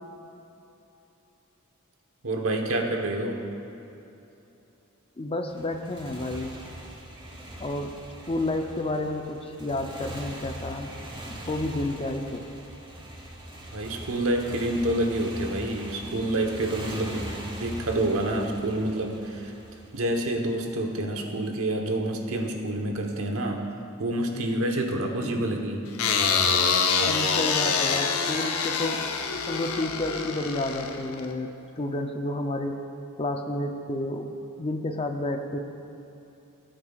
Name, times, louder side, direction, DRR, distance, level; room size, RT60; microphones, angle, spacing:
voice 1, 2.2-3.4 13.7-19.5 19.9-23.6 24.0-25.8, right 1 dB, 75° right, 2 dB, 1.1 m, -28 dB
voice 2, 5.2-6.6 7.6-7.9 8.3-10.9 11.3-12.5 25.2-25.5 27.0-32.7 33.2-34.3 34.6-35.6, left 2 dB, 25° left, 5 dB, 0.5 m, -31 dB
Motorcycle, 5.5-20.6, right 1 dB, 20° right, 1.1 m, -41 dB
sound 1, 26.0-31.3, left 5 dB, 80° left, 0.8 m, -25 dB
17.5 x 8.9 x 2.4 m, 2.9 s
head